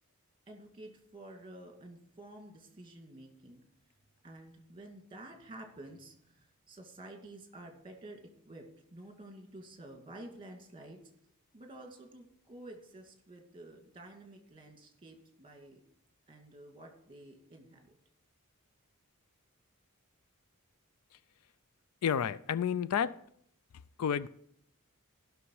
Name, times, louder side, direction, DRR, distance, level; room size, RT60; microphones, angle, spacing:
voice 1, 0.5-3.6 4.2-11.0 11.5-15.8 16.3-17.9, right 1 dB, 25° right, 2.3 m, -51 dB
voice 2, 22.0-23.2 24.0-24.3, left 8 dB, 75° left, 0.4 m, -30 dB
15.5 x 6.2 x 4.7 m
head